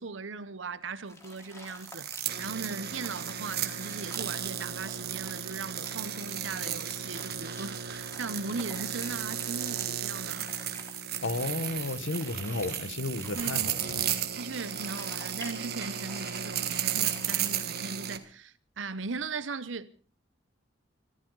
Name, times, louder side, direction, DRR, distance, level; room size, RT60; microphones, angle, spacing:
voice 1, 0.0-2.1 2.4-10.5 12.5-12.6 13.3-19.9, right 4 dB, 80° right, 0.9 m, -38 dB
sound 1, 1.1-18.0, left 2 dB, 15° left, 3.9 m, -50 dB
sound 2, 1.8-18.2, right 9 dB, 55° right, 1.5 m, -34 dB
voice 2, 11.2-14.0, left 2 dB, 80° left, 1.4 m, -33 dB
25.0 x 14.0 x 4.0 m
head